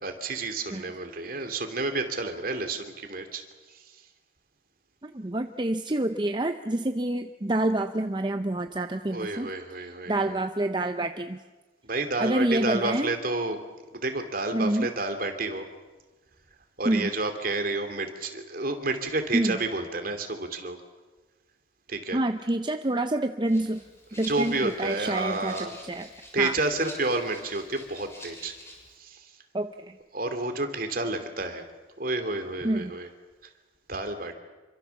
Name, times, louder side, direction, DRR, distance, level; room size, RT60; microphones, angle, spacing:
voice 1, 0.0-3.8 9.1-10.4 11.8-13.6 13.9-15.7 16.8-20.8 21.9-22.2 24.1-25.7 26.3-28.5 29.0-29.3 30.1-31.6 32.0-33.1 33.9-34.3, right 2 dB, 50° right, 6 dB, 2.9 m, -30 dB
voice 2, 5.0-9.5 10.1-11.4 12.2-13.1 14.5-14.9 16.8-17.1 19.3-19.6 22.1-23.8 24.2-25.5 25.8-26.1 26.4-26.5 29.5-30.0 32.6-32.9, right 1 dB, 25° right, 8 dB, 0.7 m, -27 dB
Rattle (instrument), 23.4-29.0, left 1 dB, 15° left, 7.1 m, -47 dB
27.0 x 24.5 x 7.2 m, 1.2 s
head